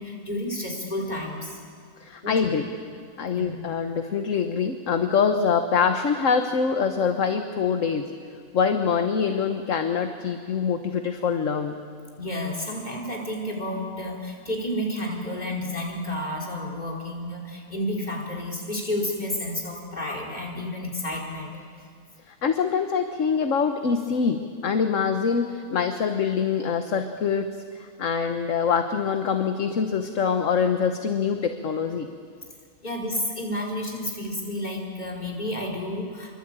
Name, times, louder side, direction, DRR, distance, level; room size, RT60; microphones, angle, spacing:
voice 1, 0.0-1.6 2.2-2.5 3.3-3.5 12.2-21.6 32.8-36.4, left 1 dB, 25° left, 0 dB, 4.5 m, -31 dB
voice 2, 2.0-2.7 3.2-8.1 8.5-11.8 22.3-27.5 27.7-32.1, left 6 dB, 55° left, 7 dB, 1.4 m, -24 dB
26.0 x 23.5 x 8.9 m, 2.1 s
omnidirectional pair, 1.7 m